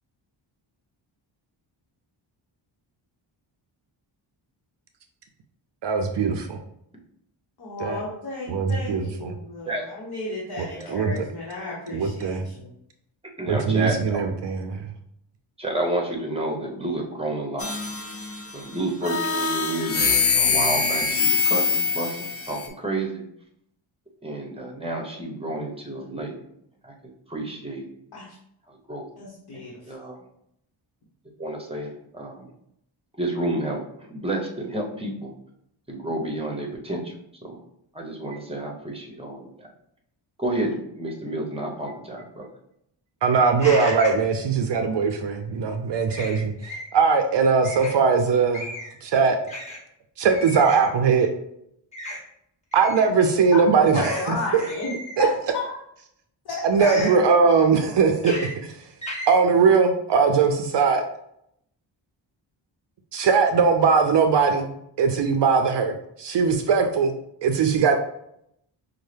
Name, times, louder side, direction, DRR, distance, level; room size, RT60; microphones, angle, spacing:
voice 1, 5.8-6.6 7.8-8.0 8.5-9.3 10.6-11.2 11.9-12.4 13.5-14.9 43.2-46.5 46.9-48.7 49.0-49.4 50.2-51.3 52.7-54.4 55.2-55.3 56.6-58.4 58.6-58.7 59.3-61.0 63.1-64.7 65.0-67.1 67.4-68.0, right 5 dB, 60° right, 6 dB, 0.5 m, -20 dB
voice 2, 7.6-12.7 28.1-28.3 29.2-29.9 53.5-53.6 53.9-54.9 55.2-55.3 55.6-55.8 56.4-57.1, left 3 dB, 50° left, -5 dB, 1.0 m, -32 dB
voice 3, 13.4-14.5 15.6-17.7 18.5-22.2 22.5-23.2 24.2-26.4 26.8-26.9 27.3-27.9 28.9-29.1 29.9-30.2 31.4-32.5 33.2-35.3 35.9-37.1 37.4-37.6 37.9-39.7 40.4-42.5, right 1 dB, 10° right, 0 dB, 0.9 m, -30 dB
sound 1, 17.6-18.5 19.0-22.7, left 4 dB, 30° left, 0.5 m, -23 dB
sound 2, 43.6-44.2 46.1-46.9 47.6-48.0 48.5-49.0 49.5-49.8 50.3-50.9 51.9-52.2 52.7-53.1 53.9-54.3 54.5-55.4 56.8-57.2 58.2-58.5 59.0-59.4, left 1 dB, 15° left, 1.4 m, -34 dB
5.3 x 2.1 x 3.3 m, 0.74 s
wide cardioid pair, 115°, 48 cm